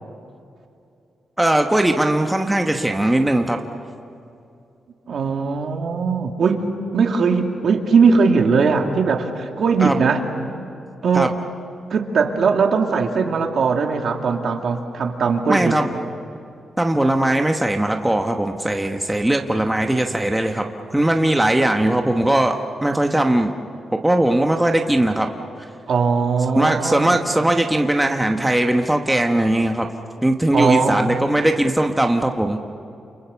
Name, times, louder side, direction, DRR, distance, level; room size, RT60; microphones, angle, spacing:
voice 1, 1.4-3.6 9.8-10.0 11.1-11.3 15.5-15.9 16.8-20.7 20.9-23.5 23.9-25.3 26.5-29.9 30.2-32.6, right 1 dB, 5° right, 3 dB, 1.1 m, -19 dB
voice 2, 5.1-6.6 6.9-10.2 11.0-11.4 11.9-15.8 25.9-27.2 30.5-31.0, right 5 dB, 60° right, 3 dB, 2.3 m, -19 dB
29.0 x 29.0 x 7.0 m, 2.6 s
wide cardioid pair, 160°, 0 cm